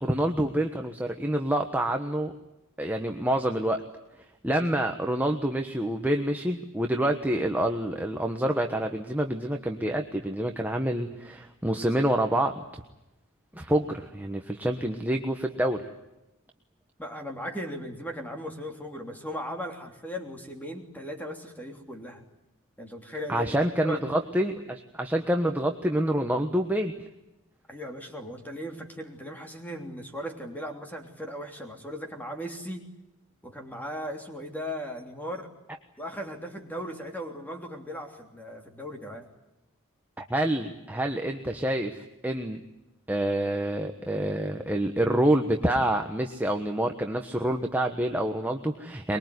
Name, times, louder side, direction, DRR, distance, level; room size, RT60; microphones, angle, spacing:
voice 1, 0.0-2.3 2.8-3.8 4.4-12.8 13.5-15.8 23.3-26.9 40.2-41.9 42.2-42.6 43.1-49.2, right 1 dB, 10° right, 3 dB, 1.2 m, -27 dB
voice 2, 17.0-22.2 22.8-24.0 27.7-32.9 33.4-35.5 36.0-39.3, equal, 10° left, 3 dB, 3.1 m, -37 dB
24.0 x 22.0 x 9.6 m, 0.95 s
head